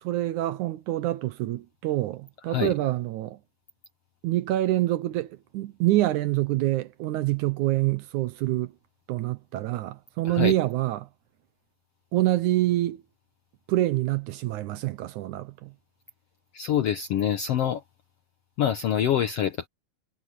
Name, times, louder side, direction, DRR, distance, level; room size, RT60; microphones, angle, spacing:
voice 1, 0.0-3.4 4.2-8.7 9.1-11.1 12.1-13.0 13.7-15.7, right 16 dB, 75° right, 2.0 m, -26 dB
voice 2, 16.5-17.8 18.6-19.7, left 10 dB, 70° left, 1.4 m, -25 dB
omnidirectional pair, 3.9 m